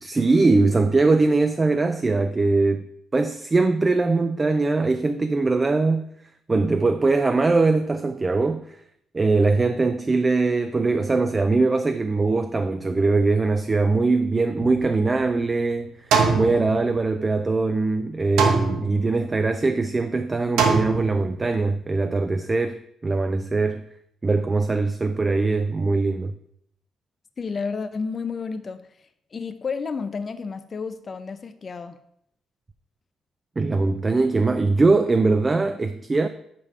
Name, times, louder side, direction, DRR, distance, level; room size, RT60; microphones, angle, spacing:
voice 1, 0.0-2.8 3.1-6.1 6.5-8.8 9.1-23.8 24.2-26.3 33.6-36.3, right 3 dB, 25° right, 0.4 m, -21 dB
sound 1, 14.6-15.5 16.1-17.4 18.4-19.3 20.6-21.5, right 5 dB, 85° right, 0.9 m, -24 dB
voice 2, 27.4-28.8 29.3-32.0, left 5 dB, 40° left, 0.5 m, -31 dB
5.2 x 4.8 x 5.5 m
cardioid pair, 90°, 0 cm